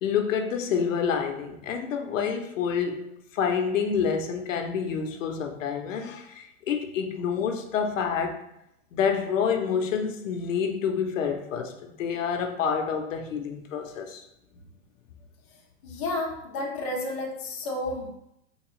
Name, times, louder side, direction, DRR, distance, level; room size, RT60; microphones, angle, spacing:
voice 1, 0.0-3.1 3.3-8.4 8.9-14.2, left 6 dB, 70° left, 4 dB, 0.7 m, -28 dB
voice 2, 15.8-18.1, left 2 dB, 25° left, -4 dB, 0.4 m, -31 dB
3.8 x 2.9 x 3.0 m, 0.81 s
hypercardioid pair, 160°, 41 cm